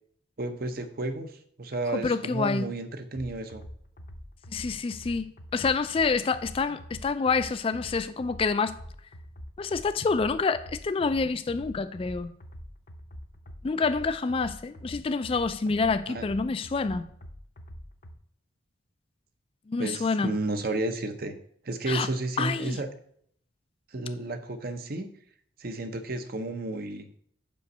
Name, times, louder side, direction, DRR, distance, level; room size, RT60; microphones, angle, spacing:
voice 1, 0.4-1.3 1.6-3.6 16.1-16.3 19.8-21.4 21.6-22.9 23.9-25.1 25.6-27.1, right 2 dB, 50° right, 0.8 m, -32 dB
voice 2, 1.9-2.7 4.5-8.8 9.6-12.3 13.6-17.1 19.7-20.4 21.9-22.1 22.4-22.8, left 4 dB, 30° left, 0.3 m, -27 dB
sound 1, 3.1-18.2, equal, 45° left, 0.7 m, -45 dB
5.4 x 5.2 x 6.5 m
head